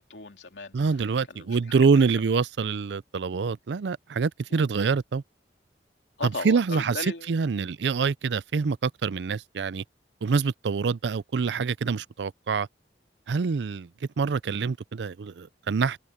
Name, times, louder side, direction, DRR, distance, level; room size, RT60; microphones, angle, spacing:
voice 1, 0.0-0.8 1.3-1.9 4.5-5.0 6.2-7.3, left 3 dB, 85° left, 2.8 m, -37 dB
voice 2, 0.7-5.2 6.4-7.0 7.3-9.8 10.2-12.7 13.3-13.9 14.2-16.0, right 5 dB, 75° right, 0.5 m, -25 dB
head